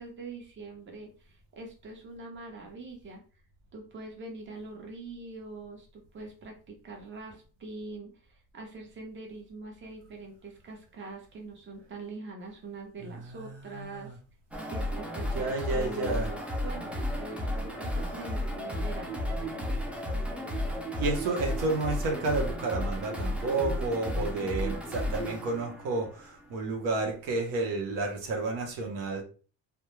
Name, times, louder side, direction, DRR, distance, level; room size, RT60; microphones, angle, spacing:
voice 1, 0.0-3.2 3.7-14.2 14.7-19.7, right 3 dB, 30° right, 1 dB, 0.8 m, -43 dB
voice 2, 13.3-14.1 15.3-16.3 21.0-29.2, right 3 dB, 85° right, 2 dB, 0.9 m, -31 dB
sound 1, 14.5-26.6, left 1 dB, 5° right, 0.3 m, -33 dB
2.2 x 2.1 x 3.0 m, 0.36 s
cardioid pair, 115°, 38 cm